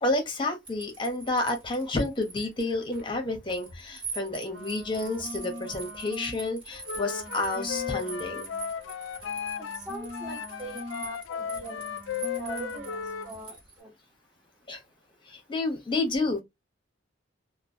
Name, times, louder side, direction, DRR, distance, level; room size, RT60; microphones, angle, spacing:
voice 1, 0.0-8.5 14.7-14.8 15.3-16.4, left 2 dB, 25° left, 0.9 m, -30 dB
sound 1, 0.6-13.8, right 3 dB, 25° right, 1.4 m, -43 dB
sound 2, 4.1-6.4 6.7-11.1 11.3-13.4, left 1 dB, 65° right, 1.0 m, -43 dB
Wind instrument woodwind instrument, 6.9-9.8 10.1-13.3, left 8 dB, 80° left, 0.3 m, -35 dB
voice 2, 9.6-11.8 12.4-13.9, right 1 dB, 5° right, 0.9 m, -41 dB
2.9 x 2.1 x 2.7 m
head